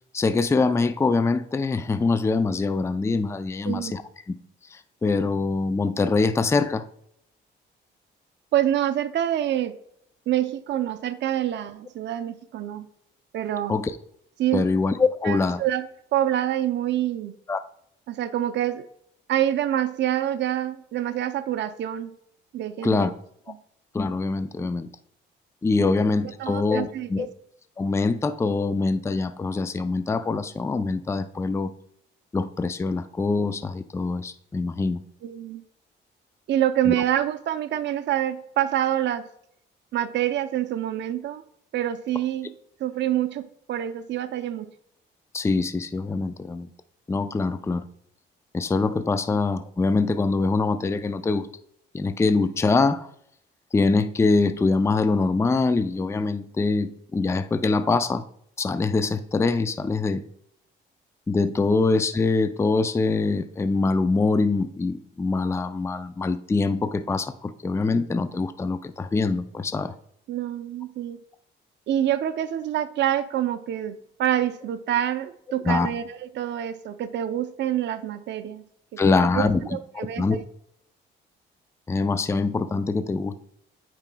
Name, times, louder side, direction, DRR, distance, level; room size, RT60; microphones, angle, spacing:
voice 1, 0.1-4.0 4.3-4.4 4.7-6.8 13.7-13.9 14.5-15.6 17.5-17.6 22.8-23.1 23.9-24.9 25.6-27.3 27.8-31.7 32.3-35.0 36.9-37.0 45.3-46.7 47.1-47.8 48.5-51.5 51.9-53.1 53.7-58.2 58.6-60.2 61.3-69.9 75.6-75.9 79.0-79.6 79.9-80.4 81.9-83.4, left 3 dB, 15° left, 11 dB, 0.4 m, -24 dB
voice 2, 8.5-9.8 10.3-12.9 13.3-13.8 14.4-14.7 15.2-15.9 16.1-17.3 18.1-18.9 19.3-22.1 22.5-23.1 23.5-23.6 25.8-25.9 26.4-27.3 35.2-35.6 36.5-39.2 39.9-41.4 41.7-42.5 42.8-44.7 70.3-71.2 71.9-78.6 78.9-79.0 79.3-80.4, right 11 dB, 65° right, 11 dB, 0.6 m, -26 dB
8.8 x 5.0 x 2.2 m, 0.71 s
cardioid pair, 90°, 20 cm